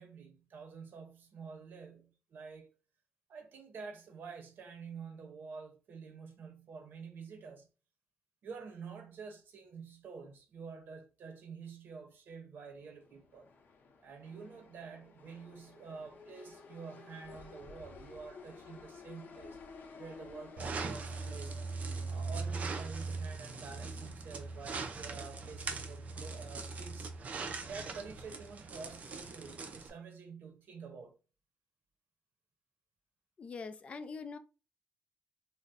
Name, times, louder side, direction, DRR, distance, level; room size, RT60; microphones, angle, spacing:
voice 1, 0.0-2.7 3.3-7.7 8.4-13.5 14.0-19.6 20.0-21.6 22.0-27.1 27.7-31.2, right 5 dB, 85° right, 0.7 m, -48 dB
sound 1, 12.7-28.6, left 4 dB, 80° left, 0.6 m, -55 dB
sound 2, 20.6-29.9, right 4 dB, 50° right, 0.4 m, -40 dB
voice 2, 33.4-34.4, left 4 dB, 40° left, 0.3 m, -43 dB
2.6 x 2.0 x 3.9 m
wide cardioid pair, 175°, 3 cm